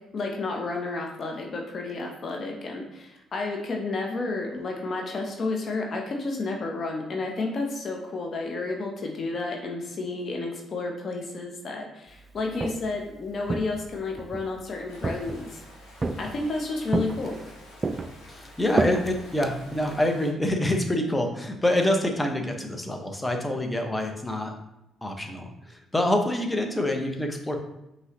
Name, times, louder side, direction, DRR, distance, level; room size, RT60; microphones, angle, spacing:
voice 1, 0.1-15.6 16.2-17.4, left 3 dB, 50° left, 1 dB, 0.8 m, -31 dB
Walk footsteps, 12.4-13.0 13.5-14.5 15.0-15.6 16.0-16.5 16.9-17.5 17.8-20.0, right 3 dB, 35° right, 0.3 m, -30 dB
sound 1, 14.9-20.3, left 2 dB, 85° left, 1.1 m, -50 dB
voice 2, 18.3-24.5 25.0-27.6, left 1 dB, 15° left, 3 dB, 0.8 m, -26 dB
5.5 x 3.0 x 3.0 m, 0.88 s
hypercardioid pair, 50°, 0 cm